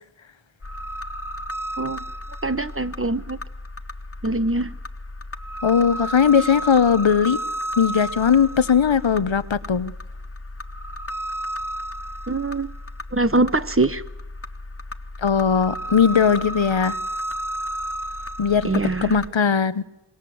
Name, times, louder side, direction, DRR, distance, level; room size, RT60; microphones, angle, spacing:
sound 1, 0.6-19.3, equal, 30° left, 1.2 m, -33 dB
voice 1, 2.4-3.4 4.2-4.7 12.3-12.7 13.1-14.0 18.6-19.2, right 2 dB, 30° right, 1.2 m, -23 dB
voice 2, 5.6-7.4 7.8-9.9 15.2-17.0 18.4-18.7 19.0-19.8, left 7 dB, 80° left, 1.0 m, -19 dB
26.0 x 21.5 x 7.8 m
wide cardioid pair, 45°, 45 cm